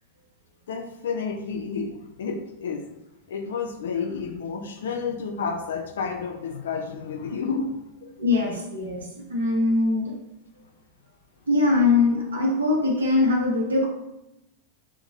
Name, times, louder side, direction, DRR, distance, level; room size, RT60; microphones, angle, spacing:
voice 1, 0.7-2.8 3.3-7.7, left 5 dB, 60° left, 4 dB, 0.4 m, -30 dB
voice 2, 8.2-10.2 11.5-13.9, left 3 dB, 70° right, -2 dB, 0.8 m, -22 dB
2.7 x 2.1 x 2.7 m, 0.90 s
figure-of-eight pair, 90°, 0 cm